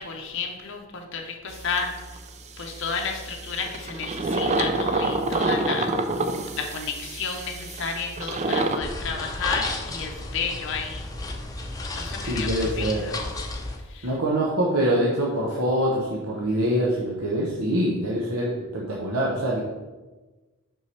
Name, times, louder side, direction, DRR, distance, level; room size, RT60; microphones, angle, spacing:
voice 1, 0.0-1.9 2.6-5.9 6.6-11.1 12.0-12.5 12.8-13.2 13.9-14.1, left 5 dB, 60° left, 2 dB, 0.7 m, -32 dB
sound 1, 1.5-2.3 2.7-8.8, right 2 dB, 30° right, 0.4 m, -27 dB
sound 2, 8.8-13.8, left 2 dB, 15° left, 0.6 m, -32 dB
voice 2, 12.3-13.1 14.0-19.6, right 1 dB, 75° right, -3 dB, 0.8 m, -24 dB
5.5 x 5.5 x 3.2 m, 1.2 s
head